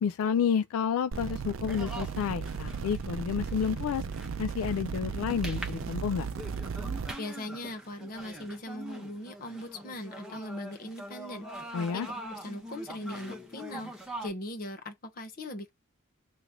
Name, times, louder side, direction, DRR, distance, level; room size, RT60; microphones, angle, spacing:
voice 1, 0.0-4.0 4.4-6.3 11.7-12.1, left 7 dB, 80° left, 0.3 m, -30 dB
sound 1, 1.1-7.1, right 5 dB, 65° right, 0.5 m, -36 dB
sound 2, 1.3-14.3, right 1 dB, 5° right, 1.0 m, -44 dB
voice 2, 7.2-13.9 14.2-15.7, left 1 dB, 45° left, 1.0 m, -40 dB
3.0 x 2.6 x 3.6 m
head